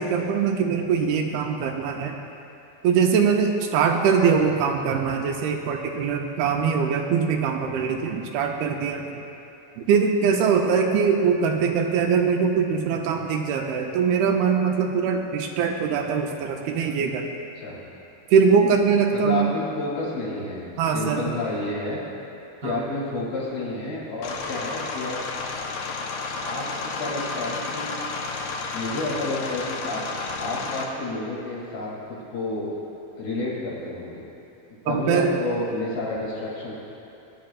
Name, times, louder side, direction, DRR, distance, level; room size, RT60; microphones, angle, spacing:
voice 1, 0.0-2.2 2.8-9.2 9.8-17.3 18.3-19.5 20.8-21.3 22.6-22.8 34.9-35.3, right 6 dB, 80° right, 2 dB, 2.4 m, -22 dB
voice 2, 19.1-22.0 22.6-25.2 26.4-26.7 26.9-27.9 28.7-30.0 30.4-32.7 33.2-34.2 34.9-36.7, left 2 dB, 70° left, -5 dB, 4.2 m, -30 dB
sound 1, 24.2-30.8, left 3 dB, 85° left, 1.6 m, -32 dB
20.0 x 10.5 x 2.4 m, 2.8 s
omnidirectional pair, 4.6 m